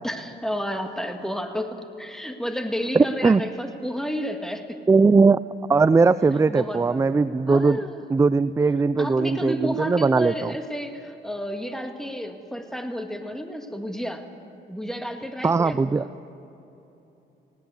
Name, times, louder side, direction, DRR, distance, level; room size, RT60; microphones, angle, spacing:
voice 1, 0.0-4.8 6.5-7.1 7.5-8.0 9.0-14.2 14.7-16.2, equal, ahead, 5 dB, 1.8 m, -31 dB
voice 2, 2.9-3.4 4.9-5.4 5.7-7.8 8.1-10.5 15.4-16.0, right 4 dB, 15° right, 15 dB, 0.4 m, -19 dB
19.5 x 17.0 x 8.2 m, 3.0 s
cardioid pair, 90°, 20 cm